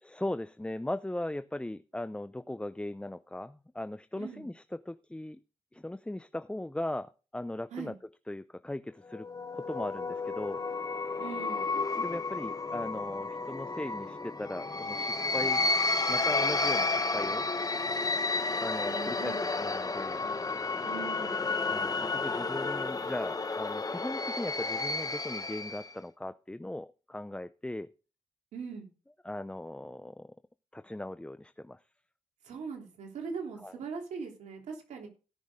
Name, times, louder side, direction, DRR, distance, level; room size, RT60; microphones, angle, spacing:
voice 1, 0.0-5.4 5.7-7.9 8.3-9.3 9.5-10.6 12.0-15.7 16.1-17.5 18.6-20.2 21.6-27.9 29.2-30.3 30.7-31.8 33.6-33.8, left 1 dB, 10° left, 13 dB, 0.6 m, -38 dB
sound 1, 9.1-25.9, left 3 dB, 30° left, 1.1 m, -32 dB
voice 2, 11.2-11.6 18.9-19.4 20.8-21.3 28.5-28.9 32.4-35.1, right 5 dB, 80° right, 1 dB, 3.1 m, -40 dB
17.5 x 6.4 x 3.6 m, 0.34 s
supercardioid pair, 50°, 12 cm